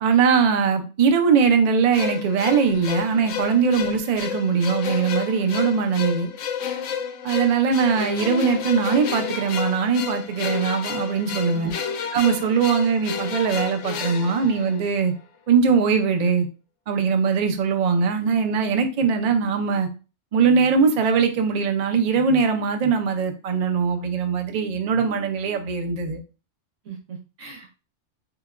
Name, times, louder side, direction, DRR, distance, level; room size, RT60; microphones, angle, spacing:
voice 1, 0.0-6.3 7.2-11.7 12.1-15.1 15.5-16.5 16.9-19.9 20.3-26.2, right 6 dB, 60° right, 0.4 m, -21 dB
sound 1, 1.9-15.2, left 7 dB, 85° left, 0.9 m, -31 dB
voice 2, 11.3-11.7 26.8-27.8, right 7 dB, 90° right, 1.3 m, -39 dB
4.6 x 2.2 x 2.3 m
omnidirectional pair, 1.2 m